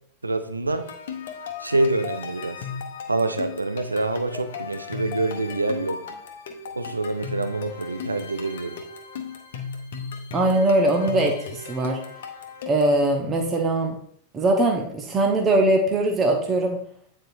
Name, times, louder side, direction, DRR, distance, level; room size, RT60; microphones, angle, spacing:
voice 1, 0.2-0.9 1.6-2.6 3.1-6.0 6.7-8.8, right 2 dB, 80° right, 9 dB, 0.5 m, -26 dB
sound 1, 0.7-13.0, left 6 dB, 60° left, 0.8 m, -36 dB
voice 2, 10.3-12.0 12.7-14.0 14.3-16.8, right 1 dB, 25° right, 3 dB, 0.9 m, -21 dB
9.1 x 4.4 x 2.6 m, 0.64 s
figure-of-eight pair, 90°, 0 cm